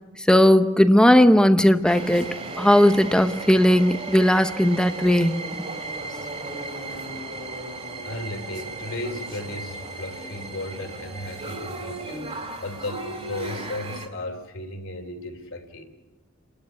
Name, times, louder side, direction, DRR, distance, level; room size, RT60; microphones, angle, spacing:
voice 1, 0.3-5.4, equal, 5° left, 10 dB, 0.8 m, -17 dB
sound 1, 1.8-14.1, right 2 dB, 30° right, 3.3 m, -35 dB
voice 2, 8.1-15.8, left 2 dB, 65° left, 4 dB, 3.3 m, -35 dB
30.0 x 12.5 x 9.7 m, 1.2 s
head